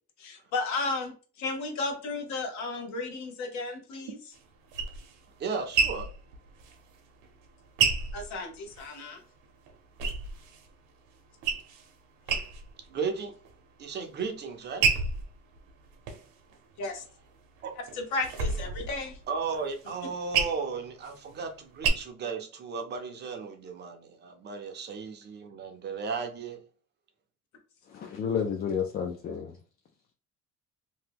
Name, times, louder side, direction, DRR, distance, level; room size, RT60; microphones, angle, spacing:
voice 1, 0.2-1.1 1.4-4.2 8.1-9.2 16.8-17.0 18.0-19.1, left 3 dB, 70° left, 4 dB, 0.9 m, -33 dB
sound 1, 4.3-9.1 9.4-10.7 11.1-11.9 12.2-12.9 13.3-13.9 14.4-17.1 17.6-21.9, right 5 dB, 85° right, 0.8 m, -31 dB
voice 2, 5.4-6.1 12.9-13.3 13.8-14.8 17.6-17.7 19.3-26.6, right 5 dB, 35° right, 4 dB, 0.5 m, -35 dB
voice 3, 27.9-29.5, left 7 dB, 35° left, 2 dB, 0.4 m, -31 dB
2.9 x 2.1 x 3.4 m, 0.38 s
cardioid pair, 155°, 30 cm